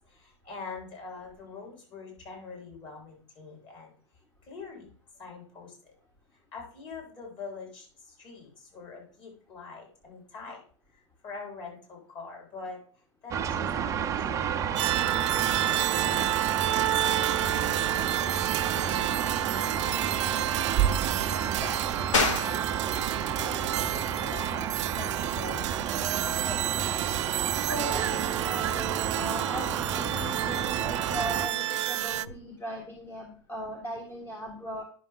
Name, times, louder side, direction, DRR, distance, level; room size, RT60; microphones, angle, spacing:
voice 1, 0.1-3.9 4.5-4.9 5.2-5.9 6.5-7.9 8.2-10.6 11.2-12.8 13.2-15.0 16.0-16.3 16.6-17.3 17.6-18.4 18.7-20.6 21.2-22.6 23.4-25.9 26.2-26.6, left 4 dB, 35° left, -1 dB, 4.8 m, -44 dB
sound 1, 13.3-31.5, right 8 dB, 20° right, 0.6 m, -31 dB
sound 2, 14.8-32.3, right 13 dB, 75° right, 0.4 m, -30 dB
sound 3, 22.1-32.4, left 4 dB, 80° left, 1.9 m, -37 dB
voice 2, 27.3-34.8, equal, 15° left, 1 dB, 1.4 m, -38 dB
10.5 x 6.2 x 3.8 m, 0.44 s
hypercardioid pair, 130°, 16 cm